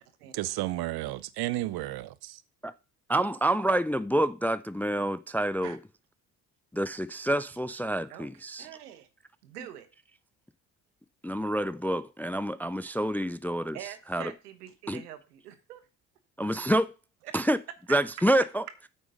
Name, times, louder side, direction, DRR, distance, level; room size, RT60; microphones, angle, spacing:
voice 1, 0.3-2.4, right 16 dB, 55° right, 0.9 m, -32 dB
voice 2, 3.1-5.8 6.7-8.7 11.2-13.8 14.1-14.3 14.9-15.0 16.4-16.9 17.3-17.6 17.9-18.6, right 1 dB, 5° left, 0.4 m, -27 dB
voice 3, 8.6-9.0 9.5-9.8 13.7-15.9 17.2-17.3 17.9-18.0, right 11 dB, 80° right, 1.3 m, -44 dB
8.8 x 6.3 x 5.2 m
hypercardioid pair, 55°, 45 cm